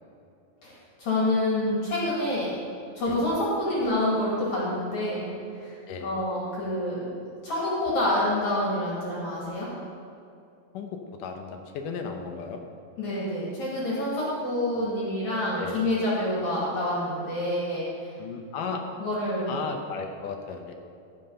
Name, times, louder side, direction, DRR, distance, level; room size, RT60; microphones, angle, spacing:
voice 1, 1.0-2.5 2.9-5.3 5.5-5.8 6.0-7.1 7.4-9.7 13.0-18.1 19.0-19.5, left 1 dB, 50° left, -6 dB, 3.3 m, -27 dB
voice 2, 10.7-12.6 14.2-14.3 14.6-14.9 15.6-15.9 18.2-18.9 19.5-20.7, left 5 dB, 75° left, 4 dB, 2.1 m, -35 dB
15.0 x 6.1 x 5.4 m, 2.6 s
omnidirectional pair, 4.4 m